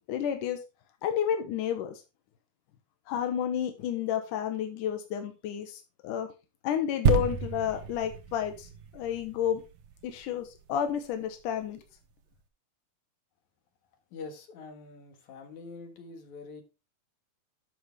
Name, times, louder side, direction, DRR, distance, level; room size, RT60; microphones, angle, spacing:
voice 1, 0.1-0.6 1.0-2.0 3.1-6.3 6.6-9.6 10.0-11.8, left 9 dB, 85° left, 2.6 m, -31 dB
sound 1, 7.1-10.6 11.3-11.4, right 6 dB, 70° right, 1.3 m, -30 dB
voice 2, 14.1-16.6, left 4 dB, 70° left, 3.0 m, -44 dB
12.0 x 6.3 x 3.4 m
omnidirectional pair, 3.6 m